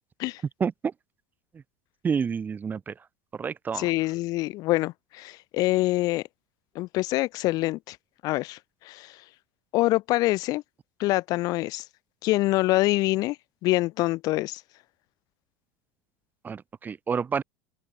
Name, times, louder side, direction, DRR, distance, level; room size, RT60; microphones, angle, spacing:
voice 1, 0.6-0.9 2.0-2.9 3.3-3.9 16.4-17.4, right 6 dB, 20° right, 1.3 m, -29 dB
voice 2, 3.7-6.2 6.7-8.0 8.2-9.2 9.7-10.6 11.0-11.8 12.2-13.4 13.6-14.6, left 19 dB, 55° left, 1.1 m, -25 dB
supercardioid pair, 120°, 8 cm